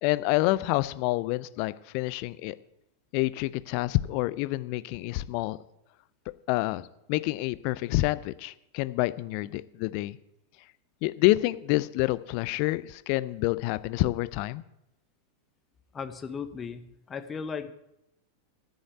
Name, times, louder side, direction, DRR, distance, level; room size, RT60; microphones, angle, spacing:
voice 1, 0.0-2.6 3.1-5.6 6.5-10.2 11.0-14.6, left 19 dB, 45° left, 16 dB, 0.5 m, -28 dB
voice 2, 15.9-17.7, left 6 dB, 20° left, 10 dB, 1.0 m, -36 dB
11.0 x 6.4 x 9.2 m, 0.85 s
figure-of-eight pair, 90°, 0 cm